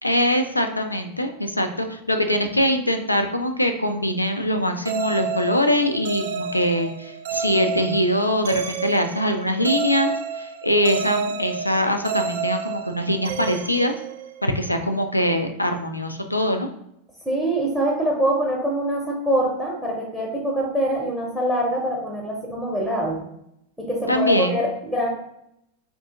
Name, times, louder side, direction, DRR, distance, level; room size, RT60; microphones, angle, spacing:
voice 1, 0.0-13.9 14.4-16.7 24.1-24.6, equal, 85° left, 6 dB, 0.3 m, -23 dB
sound 1, 4.9-14.7, right 6 dB, 55° right, 0.3 m, -30 dB
voice 2, 17.3-23.2 23.8-25.1, right 1 dB, ahead, -2 dB, 0.6 m, -24 dB
2.7 x 2.5 x 3.5 m, 0.77 s
figure-of-eight pair, 90°, 0 cm